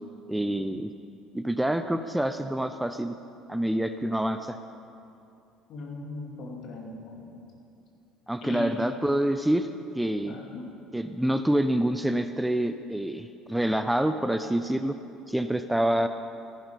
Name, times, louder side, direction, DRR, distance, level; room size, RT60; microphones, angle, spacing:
voice 1, 0.3-0.9 1.3-3.2 3.5-4.6 8.3-9.7 9.9-10.4 10.9-15.0 15.3-16.1, right 1 dB, 5° right, 9 dB, 0.6 m, -27 dB
voice 2, 5.7-7.4 8.4-8.8 10.3-10.7, left 3 dB, 55° left, 0 dB, 2.6 m, -38 dB
14.0 x 11.5 x 5.2 m, 2.7 s
figure-of-eight pair, 60°, 0 cm